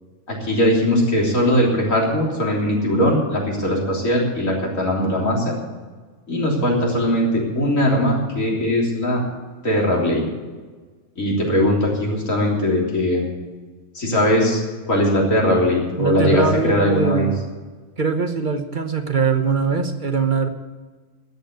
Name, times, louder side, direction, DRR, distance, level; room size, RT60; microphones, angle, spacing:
voice 1, 0.3-5.6 6.3-9.2 9.6-10.2 11.2-13.3 13.9-17.3, equal, 90° left, -2 dB, 3.9 m, -20 dB
voice 2, 16.0-17.4 18.0-20.5, right 4 dB, 40° right, 7 dB, 1.1 m, -21 dB
13.5 x 8.8 x 7.9 m, 1.4 s
omnidirectional pair, 1.3 m